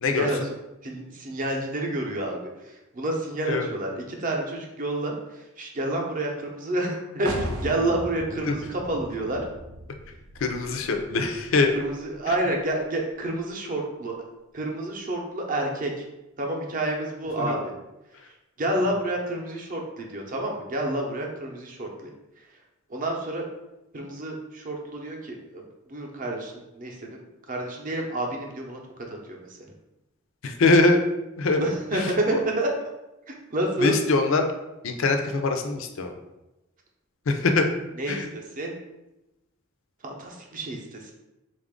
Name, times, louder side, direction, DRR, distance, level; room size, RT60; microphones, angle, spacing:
voice 1, 0.0-0.5 0.8-2.5 2.9-9.4 11.7-14.2 14.5-16.1 16.4-17.7 18.6-22.1 22.9-23.5 23.9-28.8 29.3-29.4 31.6-32.7 33.3-34.0 38.0-38.8 40.0-41.1, right 1 dB, 40° right, 1 dB, 0.6 m, -29 dB
sound 1, 7.3-12.8, right 1 dB, 85° right, 0.5 m, -38 dB
voice 2, 10.4-11.7 17.4-17.6 30.4-31.0 31.4-31.6 31.9-32.4 33.8-34.5 34.8-36.1 37.3-37.7 38.1-38.3, left 3 dB, 65° left, 5 dB, 0.5 m, -23 dB
4.0 x 2.4 x 3.6 m, 0.98 s
head